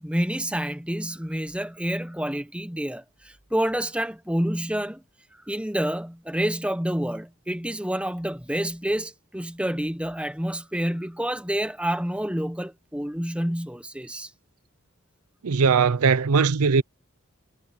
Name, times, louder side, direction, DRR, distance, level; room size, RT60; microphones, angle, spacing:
voice 1, 0.0-5.0 5.5-14.3, equal, 5° right, 1.0 m, -28 dB
voice 2, 15.4-16.8, right 5 dB, 80° right, 0.6 m, -20 dB
head